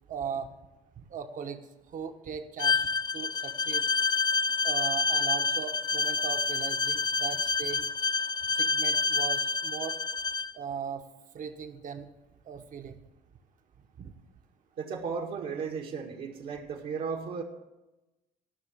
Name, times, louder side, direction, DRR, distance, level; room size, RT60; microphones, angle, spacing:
voice 1, 0.1-0.5 1.0-3.9 4.6-7.8 8.5-10.0 10.5-11.1 11.3-12.1 12.4-13.0 14.0-14.1, right 7 dB, 50° right, 6 dB, 1.3 m, -38 dB
Bowed string instrument, 2.6-10.5, left 4 dB, 25° left, 0.4 m, -28 dB
voice 2, 14.8-17.4, right 5 dB, 65° right, -2 dB, 2.0 m, -35 dB
14.5 x 6.1 x 7.5 m, 0.99 s
cardioid pair, 110°, 17 cm